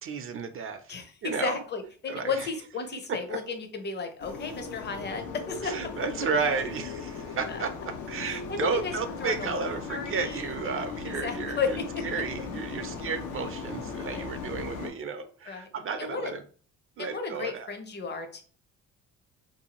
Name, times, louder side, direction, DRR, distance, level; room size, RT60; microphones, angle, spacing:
voice 1, 0.0-0.9 1.2-1.6 2.1-2.5 3.3-3.4 5.6-16.4 17.0-17.7, right 5 dB, 45° right, 8 dB, 0.4 m, -33 dB
voice 2, 0.9-5.8 7.5-7.6 8.3-8.9 9.2-10.8 11.0-12.1 14.1-14.2 15.5-15.7 16.0-16.3 17.0-18.4, left 5 dB, 35° left, 6 dB, 0.6 m, -34 dB
sound 1, 4.2-14.9, left 5 dB, 80° left, 0.6 m, -38 dB
2.6 x 2.3 x 2.9 m, 0.42 s
cardioid pair, 90°, 30 cm